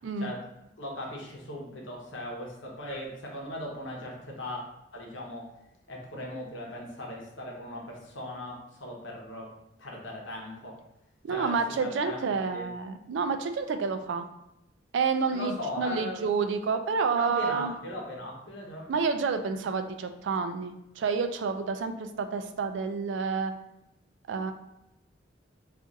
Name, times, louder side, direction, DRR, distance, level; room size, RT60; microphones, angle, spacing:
voice 1, 0.8-4.6 4.9-5.5 5.9-9.5 9.8-10.8 11.3-12.2 12.5-12.7 15.3-16.2 17.1-18.9, left 1 dB, 80° left, -1 dB, 0.9 m, -38 dB
voice 2, 11.2-14.3 14.9-17.7 18.9-23.5 24.3-24.5, right 5 dB, 75° right, 8 dB, 0.3 m, -29 dB
2.5 x 2.4 x 3.9 m, 0.86 s
head